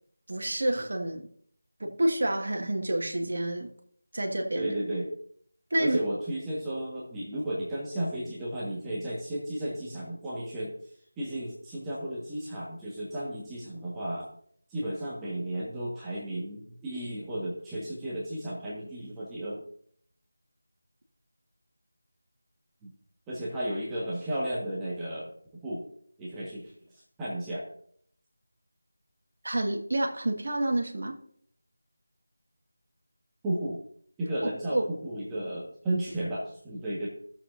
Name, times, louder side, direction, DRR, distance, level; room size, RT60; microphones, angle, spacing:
voice 1, 0.3-1.3 1.8-3.7 4.1-4.7 5.7-6.0 29.4-31.2 34.7-34.8, right 1 dB, 55° right, 1.5 m, -28 dB
voice 2, 4.5-5.1 5.8-10.9 11.2-14.3 14.7-19.6 22.8-22.9 23.3-25.9 26.2-26.7 27.2-27.7 33.4-33.8 34.2-37.1, right 1 dB, 10° right, 1.3 m, -33 dB
16.0 x 7.0 x 2.5 m
figure-of-eight pair, 165°, 0 cm